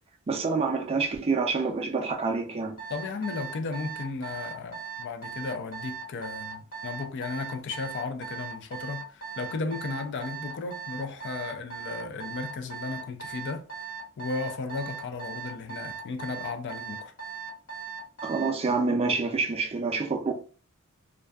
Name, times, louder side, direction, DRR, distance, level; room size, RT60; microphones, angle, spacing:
voice 1, 0.3-2.8 18.2-20.3, right 4 dB, 25° right, 0.3 m, -27 dB
Alarm, 2.8-18.6, right 7 dB, 85° left, 1.1 m, -38 dB
voice 2, 2.9-13.7 14.2-17.1, left 4 dB, 55° left, 0.4 m, -35 dB
2.5 x 2.3 x 2.3 m
head